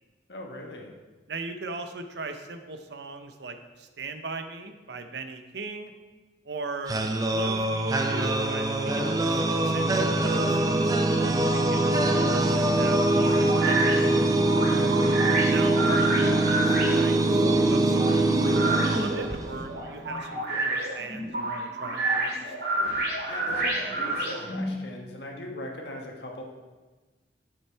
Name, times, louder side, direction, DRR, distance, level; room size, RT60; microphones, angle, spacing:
voice 1, 0.3-0.9 14.5-15.0 23.3-26.4, left 1 dB, 75° left, 1 dB, 1.3 m, -39 dB
voice 2, 1.3-5.9 6.4-7.0 7.3-10.9 11.1-14.0 15.5-16.1 16.4-22.5, right 3 dB, 75° right, 7 dB, 0.7 m, -39 dB
sound 1, 6.9-19.8, right 2 dB, 20° right, 0.5 m, -23 dB
sound 2, 13.2-24.7, right 2 dB, 60° right, 2.6 m, -29 dB
7.1 x 6.7 x 4.6 m, 1.3 s
head